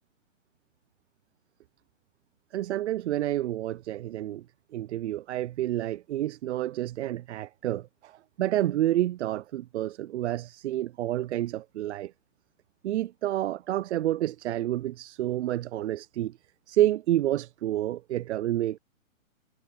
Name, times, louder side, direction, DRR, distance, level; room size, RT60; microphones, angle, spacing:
voice 1, 2.5-4.4 4.7-12.1 12.8-16.4 16.7-18.8, right 13 dB, 60° right, 0.5 m, -29 dB
hypercardioid pair, 140°, 39 cm